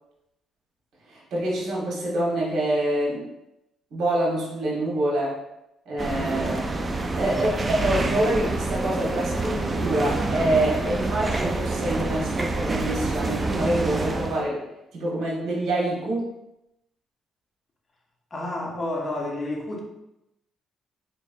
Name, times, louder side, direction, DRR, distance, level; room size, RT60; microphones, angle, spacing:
voice 1, 1.1-3.3 3.9-5.4 5.9-6.7 7.2-14.6 14.9-16.3, right 1 dB, 70° right, -4 dB, 1.3 m, -26 dB
sound 1, 6.0-14.5, right 2 dB, 25° right, 0.4 m, -27 dB
voice 2, 7.2-7.5 18.3-19.8, left 1 dB, 35° left, -1 dB, 0.8 m, -30 dB
4.1 x 3.1 x 2.5 m, 0.87 s
cardioid pair, 90°, 0 cm